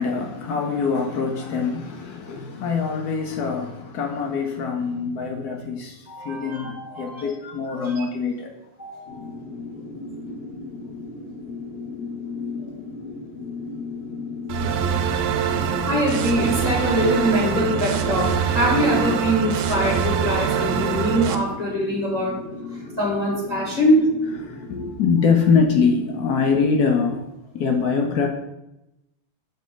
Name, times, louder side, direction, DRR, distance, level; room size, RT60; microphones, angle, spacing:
voice 1, 0.0-8.5 22.8-22.9 24.4-27.2 27.5-28.3, left 5 dB, 75° left, 3 dB, 0.9 m, -23 dB
voice 2, 6.1-8.0 8.8-9.2 15.9-22.4 23.0-24.1, equal, 20° left, -4 dB, 1.2 m, -23 dB
sound 1, 9.1-27.2, left 3 dB, 40° left, 0.9 m, -36 dB
sound 2, 14.5-21.4, right 7 dB, 80° right, 1.5 m, -24 dB
7.3 x 4.1 x 3.8 m, 0.91 s
omnidirectional pair, 2.4 m